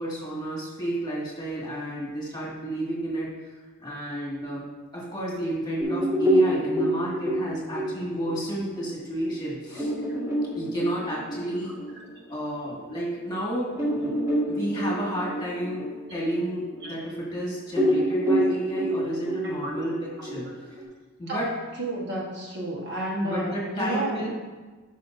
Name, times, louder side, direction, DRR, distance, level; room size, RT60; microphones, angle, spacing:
voice 1, 0.0-3.3 3.8-9.9 10.6-11.8 12.3-14.2 14.5-20.8 21.2-21.5 23.2-24.3, right 1 dB, 20° left, -5 dB, 1.9 m, -31 dB
sound 1, 5.8-12.9 13.3-13.4 13.8-17.4 17.7-20.8, equal, 15° right, 1.9 m, -27 dB
voice 2, 21.8-24.3, right 1 dB, 50° right, -3 dB, 1.3 m, -31 dB
11.0 x 5.7 x 2.6 m, 1.3 s
head